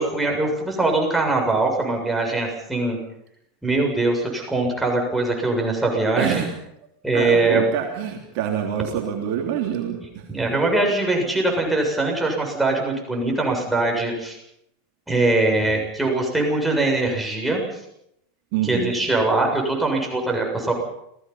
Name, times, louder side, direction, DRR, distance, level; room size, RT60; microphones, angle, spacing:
voice 1, 0.0-3.0 3.6-6.4 7.0-7.6 10.3-14.4 15.1-17.8 18.6-20.7, right 2 dB, 5° right, -1 dB, 7.3 m, -22 dB
voice 2, 6.2-6.5 7.1-10.3 18.5-18.9, right 9 dB, 50° right, 2 dB, 3.3 m, -26 dB
29.0 x 19.0 x 5.7 m, 0.78 s
figure-of-eight pair, 85°, 0 cm